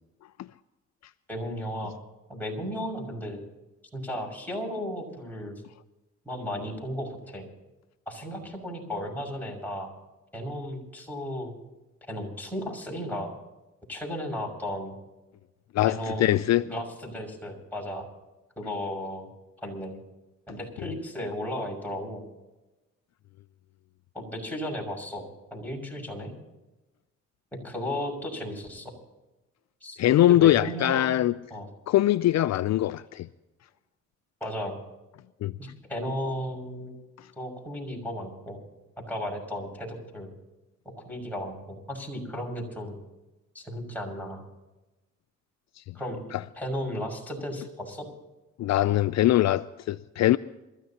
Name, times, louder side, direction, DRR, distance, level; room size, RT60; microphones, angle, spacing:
voice 1, 1.3-1.9 2.3-3.4 3.9-5.6 6.2-7.5 8.1-9.9 10.3-11.5 12.1-13.3 13.9-14.9 15.9-18.0 18.6-19.3 19.6-20.0 20.5-22.2 24.1-26.3 27.5-28.9 29.8-31.2 31.5-31.7 34.4-34.8 35.6-36.9 37.4-38.6 39.1-40.3 40.8-43.0 43.5-44.4 45.9-46.2 46.6-48.1, equal, 5° left, 6.2 m, -35 dB
voice 2, 15.7-16.7 30.0-31.3 31.9-33.3 35.4-35.5 46.3-46.4 48.6-50.4, left 14 dB, 60° left, 0.5 m, -22 dB
27.5 x 14.5 x 2.9 m
cardioid pair, 90°, 30 cm